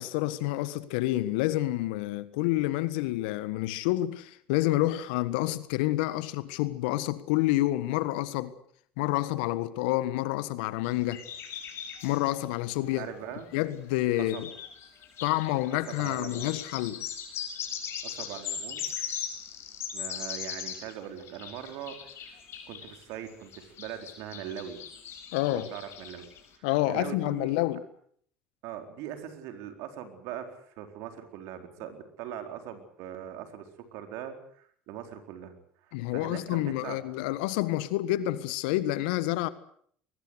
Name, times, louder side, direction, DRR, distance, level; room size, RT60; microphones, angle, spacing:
voice 1, 0.0-8.5 9.0-11.2 12.0-13.1 13.5-14.5 15.2-17.0 25.3-25.7 26.6-27.8 35.9-39.5, left 16 dB, 75° left, 1.5 m, -28 dB
sound 1, 10.8-12.3 13.5-13.6 14.1-20.9 21.2-26.4, left 8 dB, 55° left, 5.8 m, -39 dB
voice 2, 12.9-13.5 14.3-14.5 15.7-16.6 18.0-18.8 19.9-22.4 22.7-24.8 25.5-26.3 26.5-27.5 28.6-35.5 35.8-37.0, right 10 dB, 65° right, 4.2 m, -41 dB
22.0 x 20.5 x 8.1 m
hypercardioid pair, 70°, 5 cm